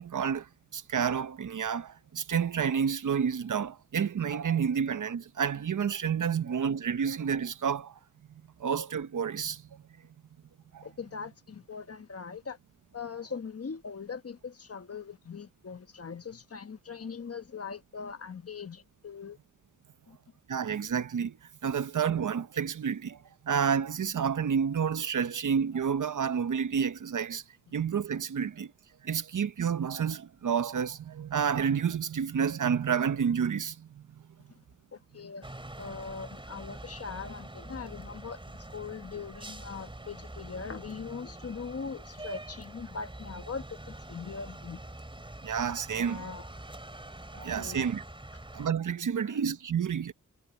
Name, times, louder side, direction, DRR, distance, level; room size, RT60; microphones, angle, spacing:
voice 1, 0.0-8.0 8.6-9.8 10.7-10.9 20.5-21.4 21.6-23.2 23.4-27.4 27.7-28.7 29.0-34.0 45.4-46.3 47.3-48.0 48.5-50.1, right 7 dB, 70° right, 0.9 m, -30 dB
voice 2, 10.8-12.6 12.9-19.4 20.1-20.2 28.4-28.5 34.9-35.5 35.8-44.8 46.0-46.5 47.3-47.8 49.2-49.4, left 5 dB, 50° left, 1.2 m, -41 dB
sound 1, 35.4-48.7, right 1 dB, 15° right, 3.2 m, -45 dB
wide cardioid pair, 95°, 32 cm